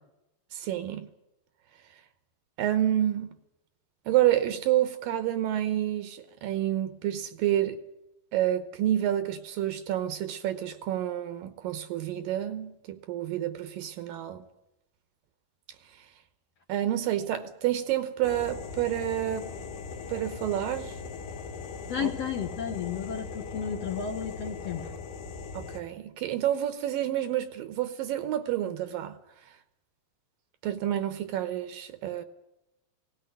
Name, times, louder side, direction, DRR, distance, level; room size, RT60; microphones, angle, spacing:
voice 1, 0.5-1.1 2.6-3.4 4.1-7.8 8.3-14.4 16.7-19.5 20.1-21.0 22.0-22.1 25.5-29.2 30.6-32.2, right 12 dB, 75° right, 2.5 m, -29 dB
sound 1, 18.2-25.8, left 5 dB, 90° left, 3.7 m, -39 dB
voice 2, 21.9-24.9, left 8 dB, 55° left, 1.8 m, -33 dB
18.0 x 17.5 x 9.6 m
omnidirectional pair, 4.4 m